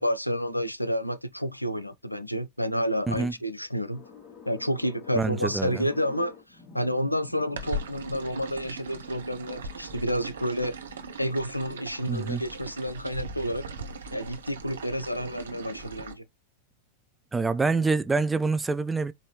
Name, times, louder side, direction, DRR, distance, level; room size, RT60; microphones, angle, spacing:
voice 1, 0.0-4.0 4.5-6.4 6.7-10.8 11.2-13.7 14.1-16.2, equal, 90° left, 0.4 m, -30 dB
sound 1, 3.9-14.3, left 5 dB, 20° left, 2.0 m, -50 dB
voice 2, 5.1-5.8 12.1-12.4 17.3-19.1, right 4 dB, 10° right, 0.3 m, -26 dB
sound 2, 7.6-16.1, right 2 dB, 70° right, 0.6 m, -39 dB
4.7 x 2.7 x 2.9 m
figure-of-eight pair, 90°, 0 cm